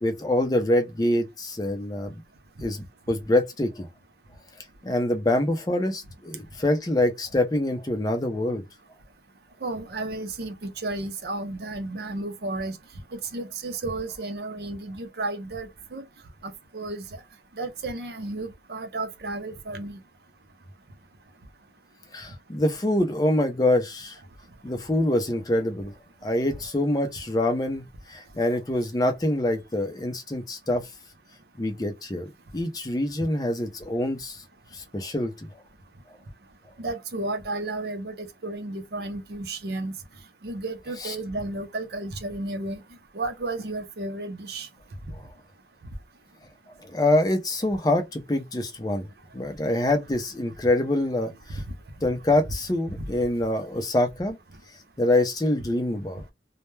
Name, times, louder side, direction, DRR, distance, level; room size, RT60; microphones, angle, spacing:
voice 1, 0.0-2.2 2.6-3.9 4.8-8.6 22.1-24.2 24.6-25.9 26.2-30.8 31.6-34.4 34.7-35.5 41.0-41.1 45.1-45.2 46.8-49.1 49.3-51.6 52.0-54.4 55.0-56.2, left 1 dB, 20° left, 0.5 m, -25 dB
voice 2, 9.6-12.7 13.1-16.0 16.4-17.0 17.6-20.0 36.8-39.9 40.4-42.8 43.1-44.7 53.0-53.1, right 2 dB, 60° right, 0.6 m, -33 dB
2.2 x 2.1 x 3.1 m
head